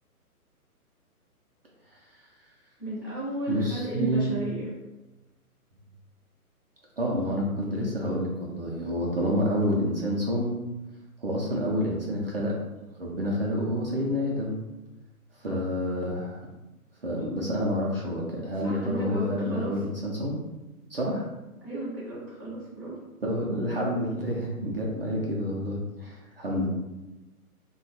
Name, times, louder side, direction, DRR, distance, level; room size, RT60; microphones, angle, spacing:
voice 1, 2.8-4.7 15.4-15.6 18.6-19.7 21.6-22.9 26.3-26.4, right 1 dB, 15° left, -12 dB, 0.5 m, -34 dB
voice 2, 3.5-4.3 7.0-10.5 11.2-12.6 12.9-14.6 15.4-16.4 17.0-20.4 20.9-21.3 23.2-26.7, equal, 45° right, -3 dB, 0.4 m, -28 dB
2.8 x 2.2 x 2.7 m, 1.1 s
hypercardioid pair, 155°, 45 cm